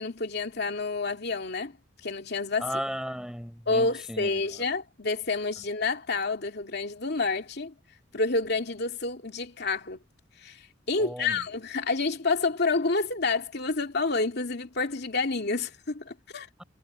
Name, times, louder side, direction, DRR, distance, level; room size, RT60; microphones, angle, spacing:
voice 1, 0.0-1.8 2.0-2.8 3.7-7.7 8.1-10.0 10.4-10.6 10.9-16.5, left 3 dB, 60° left, 2.6 m, -29 dB
voice 2, 2.6-4.3 11.0-11.4, equal, 5° right, 6.6 m, -35 dB
head